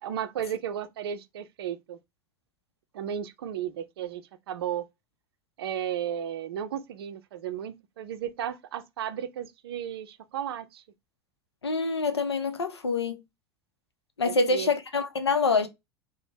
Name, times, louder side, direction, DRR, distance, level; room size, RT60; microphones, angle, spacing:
voice 1, 0.0-2.0 2.9-4.8 5.6-10.8 14.2-14.7, right 9 dB, 65° right, 0.5 m, -34 dB
voice 2, 11.6-13.2 14.2-15.7, left 3 dB, 80° left, 0.6 m, -26 dB
2.9 x 2.1 x 3.2 m
figure-of-eight pair, 80°, 14 cm